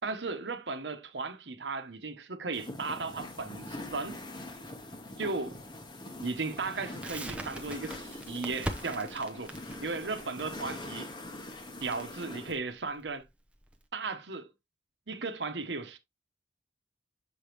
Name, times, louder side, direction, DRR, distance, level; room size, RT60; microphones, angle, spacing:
voice 1, 0.0-4.2 5.2-5.6 6.2-9.5 9.8-11.1 11.8-13.2 13.9-14.5 15.1-16.0, right 3 dB, 80° right, 1.1 m, -36 dB
sound 1, 2.5-12.5, left 2 dB, 25° left, 1.0 m, -43 dB
Crackle, 7.0-13.8, right 1 dB, 5° right, 0.6 m, -42 dB
6.9 x 5.2 x 3.0 m
head